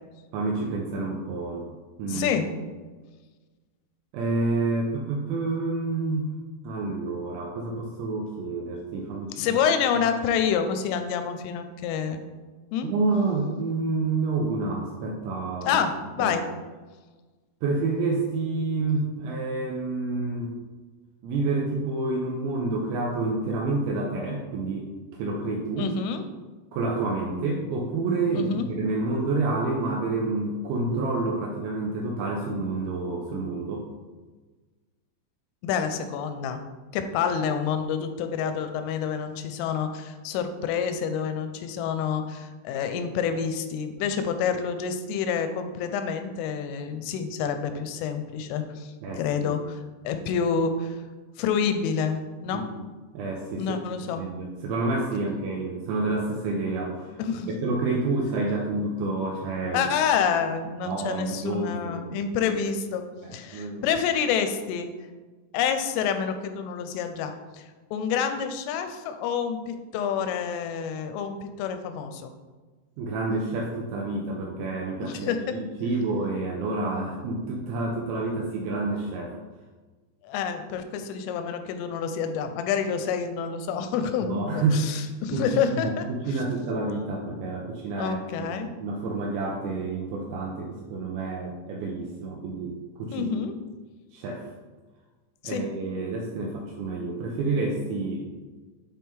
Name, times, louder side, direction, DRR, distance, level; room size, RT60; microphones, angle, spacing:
voice 1, 0.3-1.7 2.0-2.3 4.1-6.4 6.6-9.6 12.8-15.8 16.2-16.4 17.6-20.5 21.2-24.9 25.2-25.9 26.7-33.9 49.0-49.5 52.5-52.6 53.1-53.6 54.2-57.1 57.5-59.8 60.8-62.0 63.5-63.9 73.0-79.4 84.3-84.9 85.3-88.5 88.8-93.3 94.1-94.5 95.4-98.2, right 3 dB, 80° right, 0 dB, 2.6 m, -28 dB
voice 2, 2.1-2.5 9.4-12.2 12.7-12.9 15.6-16.5 25.8-26.2 28.3-28.7 35.6-36.6 36.9-51.0 51.4-52.7 53.6-54.2 57.2-57.5 59.7-63.1 63.3-64.9 65.5-72.3 75.0-75.6 80.2-86.4 88.0-88.8 93.1-93.5 95.4-95.6, left 7 dB, 85° left, 8 dB, 3.1 m, -28 dB
7.6 x 4.3 x 3.7 m, 1.3 s
omnidirectional pair, 5.8 m